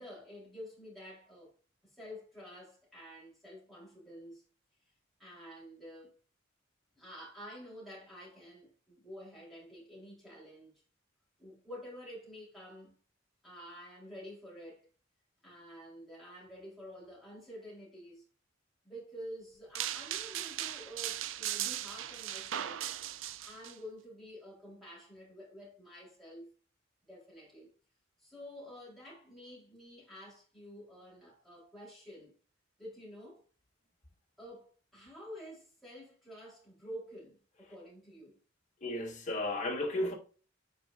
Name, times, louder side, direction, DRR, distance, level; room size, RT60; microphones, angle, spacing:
voice 1, 0.0-1.5 1.9-4.4 5.2-6.1 7.0-10.7 11.4-13.0 13.4-14.9 15.4-18.2 18.8-22.8 23.4-26.5 27.1-27.7 28.2-32.3 32.8-33.4 34.4-38.4, equal, ahead, 3.8 m, -49 dB
sound 1, 19.8-23.7, right 12 dB, 80° right, 0.4 m, -38 dB
voice 2, 38.8-40.1, left 1 dB, 40° left, 1.8 m, -34 dB
9.2 x 4.7 x 2.5 m
head